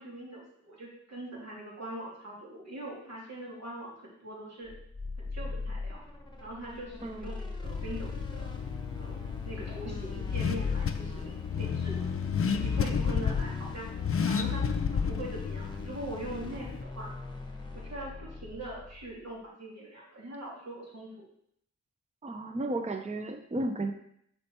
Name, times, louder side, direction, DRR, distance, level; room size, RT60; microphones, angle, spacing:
voice 1, 0.0-4.7 5.2-6.0 6.4-8.5 9.0-12.0 12.5-13.9 14.2-17.1 17.7-21.3, right 1 dB, 65° right, -5 dB, 3.0 m, -42 dB
sound 1, 4.6-19.2, left 3 dB, 15° left, 1.1 m, -42 dB
Car / Accelerating revving vroom, 7.6-16.8, left 6 dB, 50° left, 0.5 m, -32 dB
voice 2, 22.2-23.9, right 2 dB, 25° right, 5 dB, 0.6 m, -33 dB
6.8 x 4.4 x 4.3 m, 0.69 s
wide cardioid pair, 95°, 29 cm